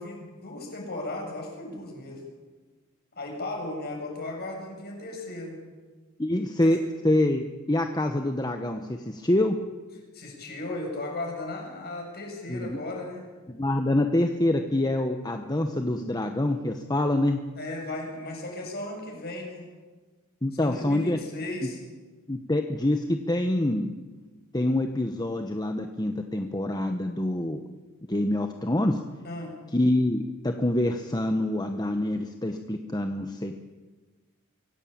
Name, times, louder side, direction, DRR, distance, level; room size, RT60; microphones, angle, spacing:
voice 1, 0.0-2.2 3.2-5.6 6.6-6.8 10.1-13.3 17.6-19.7 20.6-21.8 29.2-29.6, left 2 dB, 45° left, 1 dB, 7.2 m, -36 dB
voice 2, 6.2-9.6 12.5-12.8 13.5-17.4 20.4-21.2 22.3-23.9 24.5-27.6 28.1-29.0 29.7-33.6, left 1 dB, 20° left, 5 dB, 1.1 m, -26 dB
25.0 x 17.0 x 8.8 m, 1.3 s
head